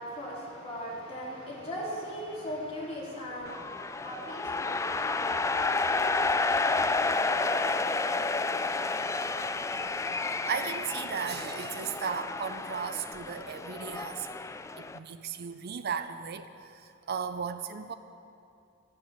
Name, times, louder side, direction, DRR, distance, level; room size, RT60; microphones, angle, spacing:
voice 1, 0.0-10.5, equal, 30° left, -6 dB, 3.7 m, -41 dB
sound 1, 3.4-15.0, left 3 dB, 15° left, 0.3 m, -30 dB
voice 2, 10.2-14.4 14.8-17.9, right 6 dB, 50° right, 10 dB, 0.5 m, -36 dB
13.0 x 9.9 x 7.3 m, 2.6 s
head